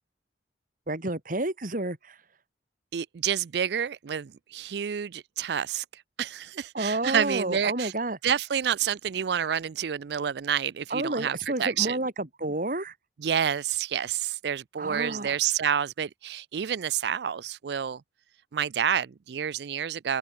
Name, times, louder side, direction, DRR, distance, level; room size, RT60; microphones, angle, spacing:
voice 1, 0.9-2.2 6.7-8.2 10.9-12.9 14.8-15.4, right 2 dB, 50° right, 2.3 m, -30 dB
voice 2, 2.9-7.9 8.2-12.0 13.2-18.0 18.5-20.2, right 8 dB, 65° right, 0.4 m, -29 dB
open air
head